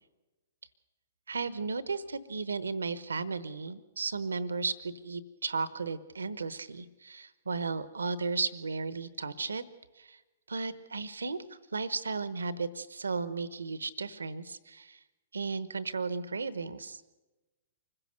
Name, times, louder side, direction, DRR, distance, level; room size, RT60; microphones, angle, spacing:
voice 1, 1.3-9.6 10.0-10.2 10.5-15.0 15.3-17.0, right 4 dB, 85° right, 15 dB, 1.0 m, -35 dB
25.0 x 15.5 x 6.6 m, 1.1 s
hypercardioid pair, 120°, 0 cm